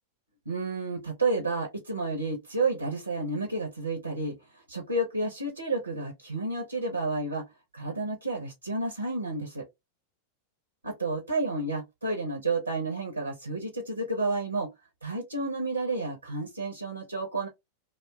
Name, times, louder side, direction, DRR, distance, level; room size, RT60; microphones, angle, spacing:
voice 1, 0.5-7.4 7.7-9.7 10.8-14.7 15.0-17.5, right 2 dB, 85° right, 0.9 m, -31 dB
2.6 x 2.4 x 3.3 m
figure-of-eight pair, 90°, 0 cm